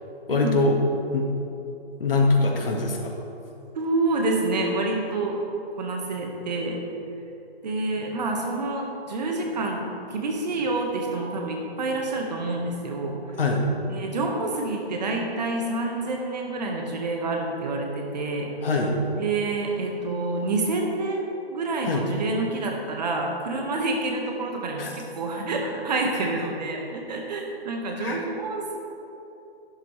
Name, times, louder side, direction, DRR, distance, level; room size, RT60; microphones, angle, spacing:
voice 1, 0.3-0.8 1.1-1.3 2.0-3.1 13.4-13.6 18.6-18.9 21.8-22.0 24.8-24.9 26.1-26.3 28.0-28.2, left 3 dB, 60° left, 0 dB, 1.9 m, -23 dB
voice 2, 3.7-5.4 5.8-6.8 7.6-13.2 13.9-18.5 19.2-21.2 21.5-28.8, right 2 dB, 40° right, 1 dB, 1.7 m, -28 dB
12.0 x 10.0 x 3.4 m, 2.8 s
hypercardioid pair, 155°, 32 cm